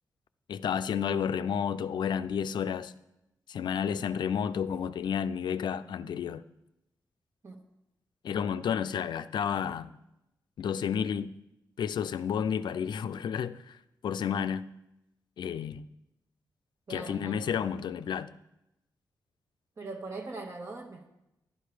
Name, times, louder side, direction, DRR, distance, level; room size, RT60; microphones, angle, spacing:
voice 1, 0.5-2.9 3.5-6.4 8.2-10.0 10.6-11.3 11.8-13.8 14.0-14.7 15.4-15.9 16.9-18.3, left 7 dB, 75° left, 0.5 m, -31 dB
voice 2, 16.9-17.6 19.8-21.1, right 3 dB, 40° right, 1.2 m, -41 dB
12.0 x 11.5 x 5.0 m
wide cardioid pair, 120°, 8 cm